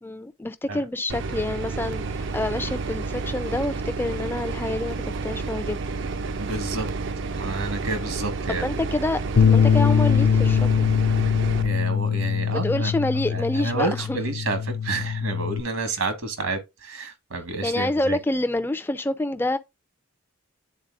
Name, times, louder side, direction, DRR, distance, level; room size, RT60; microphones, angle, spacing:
voice 1, 0.0-5.8 8.6-10.9 12.5-14.2 17.6-19.6, left 1 dB, 10° left, 0.4 m, -27 dB
sound 1, 1.1-11.7, right 4 dB, 55° right, 0.4 m, -30 dB
voice 2, 6.3-6.9 7.3-8.7 11.6-12.9 13.3-18.2, right 3 dB, 80° right, 1.5 m, -29 dB
Bass guitar, 9.4-15.6, left 7 dB, 70° left, 0.5 m, -22 dB
10.0 x 4.0 x 2.4 m
head